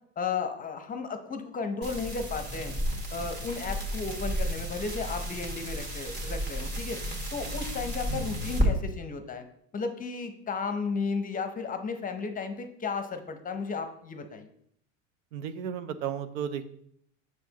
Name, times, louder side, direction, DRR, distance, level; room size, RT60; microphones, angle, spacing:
voice 1, 0.2-2.8 3.1-7.0 7.3-9.4 9.7-14.5, left 4 dB, 20° left, 7 dB, 0.7 m, -34 dB
sound 1, 1.8-8.7, equal, 25° right, 1.6 m, -32 dB
voice 2, 15.3-16.7, right 8 dB, 80° right, 11 dB, 0.7 m, -34 dB
6.9 x 6.1 x 2.9 m, 0.70 s
hypercardioid pair, 100°, 38 cm